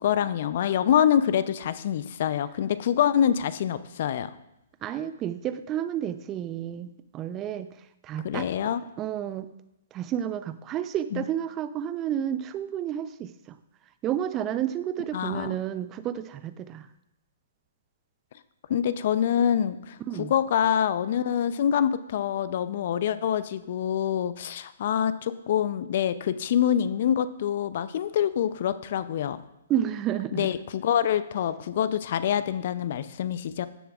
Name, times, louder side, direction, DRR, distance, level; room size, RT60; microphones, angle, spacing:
voice 1, 0.0-4.3 8.2-8.8 11.1-11.2 15.1-15.6 18.7-29.4 30.3-33.7, left 9 dB, 50° left, 14 dB, 0.5 m, -25 dB
voice 2, 4.8-7.7 8.0-8.5 9.0-9.5 9.9-13.6 14.0-16.9 20.1-20.3 29.7-30.5, right 10 dB, 25° right, 12 dB, 0.5 m, -31 dB
16.5 x 6.9 x 2.4 m, 0.86 s
figure-of-eight pair, 125°, 0 cm